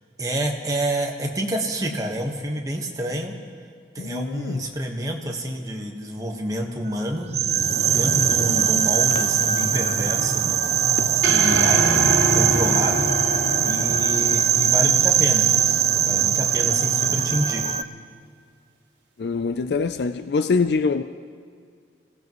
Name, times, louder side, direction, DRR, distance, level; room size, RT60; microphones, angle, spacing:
voice 1, 0.2-3.4 3.9-7.3 7.9-10.7 11.3-12.0 12.3-13.1 13.6-15.6 16.1-17.8, equal, 20° right, 1.4 m, -28 dB
voice 2, 4.0-4.6 19.2-21.0, left 4 dB, 70° left, 0.4 m, -24 dB
sound 1, 7.3-17.8, right 9 dB, 40° right, 0.4 m, -21 dB
sound 2, 11.2-15.6, right 1 dB, 85° right, 2.0 m, -25 dB
27.5 x 17.0 x 3.1 m
head